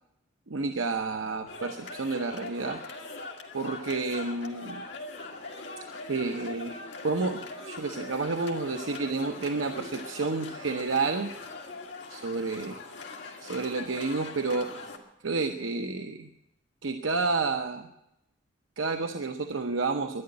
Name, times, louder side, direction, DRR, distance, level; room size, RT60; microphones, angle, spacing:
voice 1, 0.5-2.8 3.5-4.8 6.1-6.8 7.0-11.3 12.1-12.8 13.4-14.7 15.2-16.3 16.8-17.9 18.8-20.2, right 3 dB, 85° right, 5 dB, 0.8 m, -30 dB
sound 1, 1.5-15.0, left 3 dB, 65° left, 2.1 m, -41 dB
12.0 x 10.5 x 9.7 m, 0.86 s
head